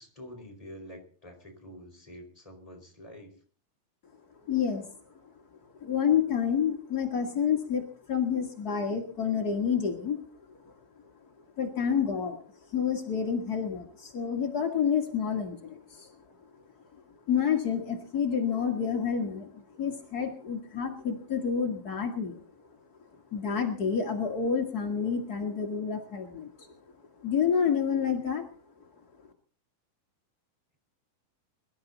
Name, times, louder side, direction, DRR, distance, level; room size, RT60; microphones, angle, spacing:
voice 1, 0.0-3.3, equal, 10° left, 1 dB, 4.8 m, -47 dB
voice 2, 4.5-4.9 5.8-10.2 10.6-10.7 11.6-12.4 12.7-16.1 17.3-22.4 23.3-26.7 27.2-28.4, left 7 dB, 60° left, 3 dB, 0.9 m, -29 dB
23.0 x 12.5 x 4.1 m, 0.43 s
omnidirectional pair, 4.6 m